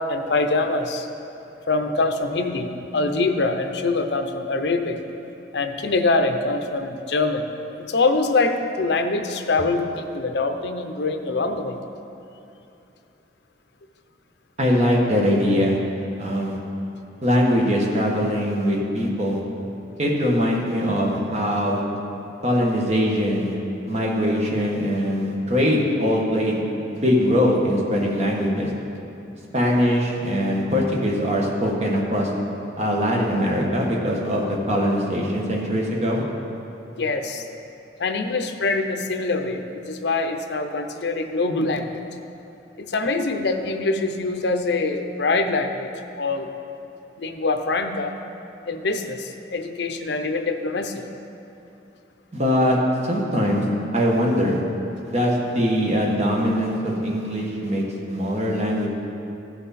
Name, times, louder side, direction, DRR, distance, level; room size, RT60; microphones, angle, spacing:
voice 1, 0.1-1.1 1.7-5.0 5.5-7.4 7.8-11.8 37.0-37.4 38.0-42.0 42.8-45.9 46.2-46.5 47.2-48.2 48.7-51.0, left 3 dB, 65° left, 6 dB, 0.6 m, -24 dB
voice 2, 14.6-15.8 16.2-16.6 17.2-19.4 20.0-21.8 22.4-23.5 23.9-26.6 26.9-28.7 29.5-32.3 32.8-36.2 52.3-52.8 53.0-53.6 53.9-54.6 55.0-58.9, equal, 35° right, -2 dB, 1.4 m, -22 dB
14.5 x 5.9 x 4.2 m, 2.8 s
head